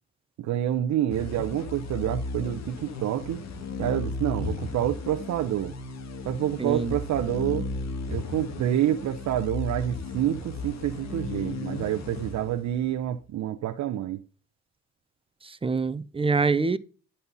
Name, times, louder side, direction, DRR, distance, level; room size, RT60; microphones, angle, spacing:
voice 1, 0.4-3.4 3.8-5.7 6.2-7.7 8.1-14.2, right 11 dB, 70° right, 0.7 m, -28 dB
sound 1, 1.1-13.0, left 3 dB, 60° left, 1.7 m, -35 dB
voice 2, 6.6-6.9 15.4-16.8, right 4 dB, 20° right, 0.6 m, -25 dB
11.0 x 4.3 x 5.3 m
cardioid pair, 90°, 30 cm